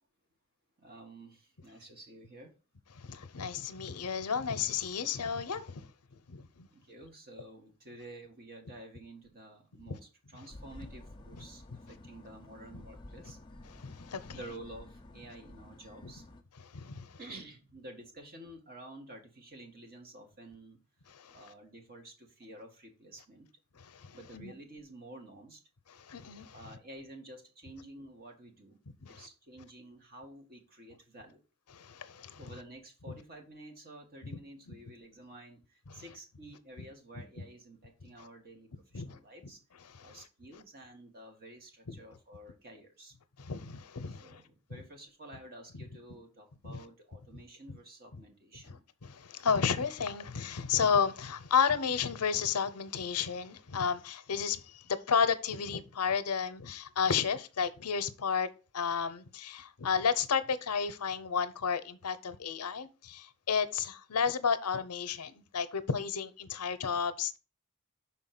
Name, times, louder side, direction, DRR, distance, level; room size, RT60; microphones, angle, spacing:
voice 1, 0.8-2.5 6.7-13.4 14.3-16.2 17.2-20.8 21.3-23.5 24.1-25.6 26.5-28.8 29.1-31.4 32.4-39.6 40.0-43.1 44.2-48.8, right 1 dB, 45° right, 1.7 m, -51 dB
voice 2, 2.9-5.9 6.3-6.7 9.9-10.0 10.3-10.4 12.7-12.8 13.7-14.4 16.0-16.1 16.6-17.2 21.1-21.5 23.7-24.5 25.9-26.6 29.0-29.3 31.7-32.4 34.2-34.4 35.9-36.0 37.4-37.5 38.9-39.2 39.9-40.2 41.9-42.0 43.4-44.4 44.7-44.8 46.6-46.8 48.7-58.5 58.7-67.4, left 6 dB, 90° left, 0.7 m, -32 dB
sound 1, 10.5-16.4, left 1 dB, 20° left, 0.7 m, -52 dB
5.8 x 4.3 x 5.8 m
head